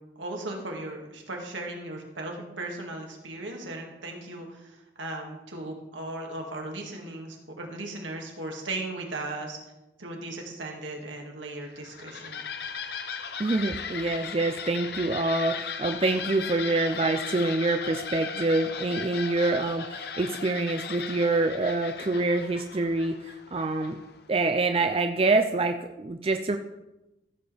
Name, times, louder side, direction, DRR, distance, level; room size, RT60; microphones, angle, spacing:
voice 1, 0.2-9.6 10.0-12.4, right 2 dB, 80° right, 1 dB, 2.2 m, -37 dB
sound 1, 11.7-24.2, left 6 dB, 55° left, 0.7 m, -37 dB
voice 2, 13.4-24.0 24.3-26.6, right 2 dB, 30° right, 6 dB, 0.4 m, -26 dB
15.0 x 7.7 x 3.4 m, 0.97 s
head